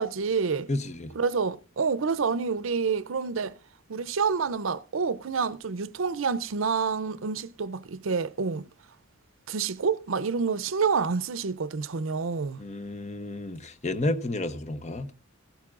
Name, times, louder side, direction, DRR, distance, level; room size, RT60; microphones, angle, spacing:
voice 1, 0.0-0.7 1.2-3.5 3.9-8.7 9.5-12.6, right 5 dB, 70° right, 0.6 m, -28 dB
voice 2, 0.7-1.1 12.6-15.1, left 2 dB, 35° left, 0.9 m, -31 dB
16.0 x 13.0 x 2.5 m
head